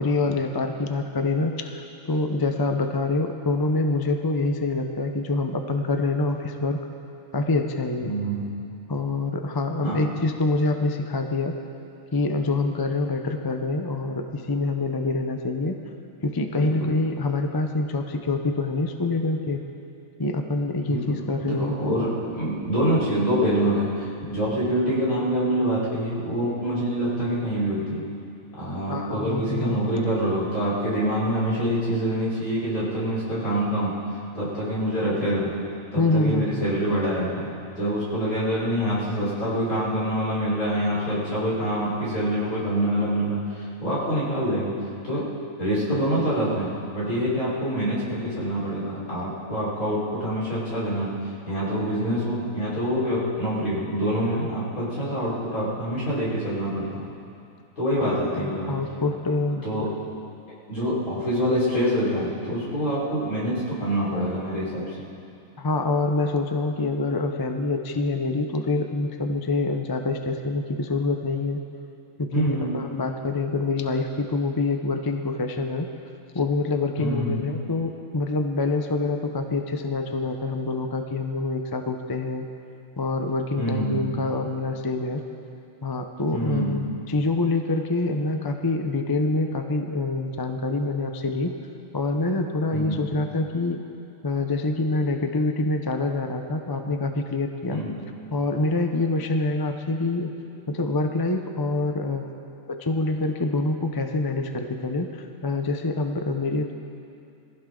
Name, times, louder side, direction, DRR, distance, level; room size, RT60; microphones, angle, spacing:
voice 1, 0.0-6.8 7.3-8.1 8.9-11.5 12.1-15.8 16.2-19.6 20.2-22.1 28.9-29.8 36.0-36.7 58.0-59.6 65.6-71.6 72.2-75.9 76.3-82.5 83.0-85.2 85.8-91.6 91.9-93.8 94.2-97.8 98.3-100.3 100.7-106.7, left 2 dB, 20° left, 5 dB, 0.6 m, -26 dB
voice 2, 8.0-8.4 9.8-10.0 16.5-16.9 20.9-28.0 28.6-34.0 34.3-35.6 35.9-44.8 45.0-51.2 51.5-57.1 57.8-58.8 59.6-60.0 60.7-65.0 72.3-72.9 77.0-77.4 83.6-84.1 86.3-86.7 92.7-93.0 97.7-97.9, equal, 75° left, -8 dB, 5.2 m, -26 dB
22.5 x 15.5 x 3.9 m, 2.6 s
omnidirectional pair, 1.5 m